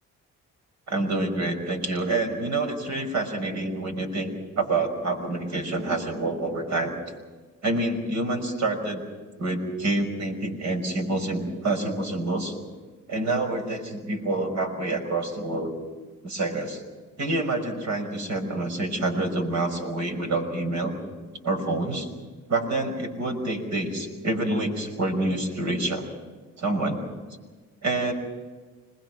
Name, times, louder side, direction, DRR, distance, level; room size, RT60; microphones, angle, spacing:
voice 1, 0.9-4.3 4.6-6.9 7.6-9.0 9.4-12.6 13.1-15.7 16.2-16.8 17.2-20.9 21.4-22.1 22.5-26.0 26.6-27.0 27.8-28.1, right 2 dB, 65° right, 4 dB, 5.6 m, -27 dB
26.5 x 20.5 x 6.1 m, 1.3 s
cardioid pair, 90°, 30 cm